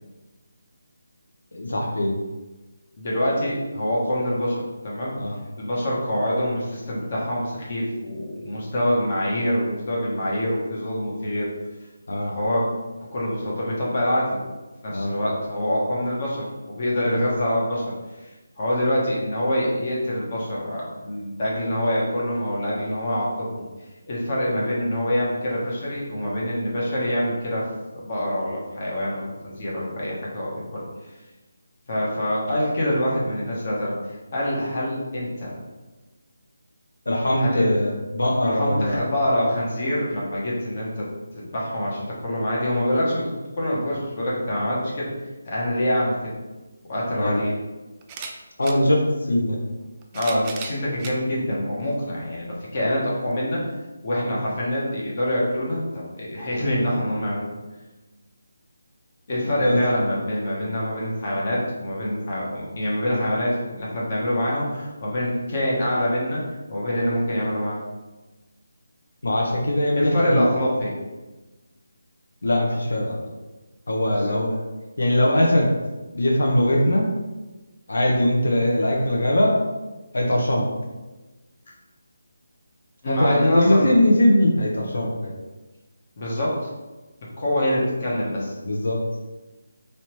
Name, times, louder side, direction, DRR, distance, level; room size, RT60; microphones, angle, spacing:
voice 1, 1.5-2.2 5.2-5.4 12.1-12.3 14.9-15.1 17.0-17.2 37.1-39.0 47.2-47.4 48.6-49.6 59.6-60.0 69.2-70.5 72.4-73.3 73.9-74.6 75.0-75.7 76.1-77.1 77.9-79.6 80.1-80.7 83.1-85.3 88.6-89.0, left 1 dB, 75° left, 0 dB, 0.7 m, -21 dB
voice 2, 3.0-5.1 5.6-11.5 12.3-12.7 13.1-14.4 14.8-17.8 18.6-23.6 24.1-27.7 28.0-30.8 31.9-35.5 37.4-37.7 38.5-41.1 41.3-43.3 43.6-45.1 45.4-46.3 46.9-47.5 50.1-53.6 54.0-57.5 59.3-66.4 66.7-67.8 69.9-70.9 74.1-74.3 83.0-83.9 86.2-86.6 87.4-88.5, equal, 45° left, -5 dB, 1.0 m, -25 dB
sound 1, 46.6-46.7 48.0-48.8 49.8-51.2 51.9-52.0 53.3-53.4, right 5 dB, 20° right, 0.3 m, -36 dB
3.1 x 2.8 x 3.0 m, 1.2 s
figure-of-eight pair, 155°, 0 cm